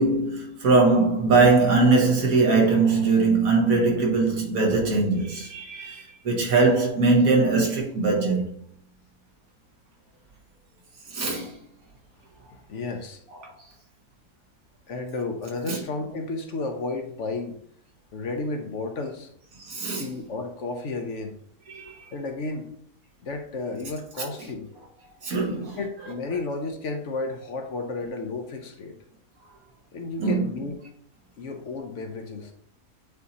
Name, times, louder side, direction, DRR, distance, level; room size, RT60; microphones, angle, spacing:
voice 1, 0.0-8.5 11.1-11.5 15.7-15.8 19.6-20.1 21.7-21.9 24.2-24.3 25.2-25.7 30.2-30.5, right 3 dB, 75° right, 1.8 m, -21 dB
voice 2, 12.5-13.2 14.9-17.6 18.1-19.3 20.0-21.4 22.1-22.7 23.2-24.7 25.5-28.9 29.9-30.8 31.4-32.5, left 3 dB, 60° left, 1.0 m, -32 dB
8.2 x 2.8 x 4.1 m
omnidirectional pair, 1.5 m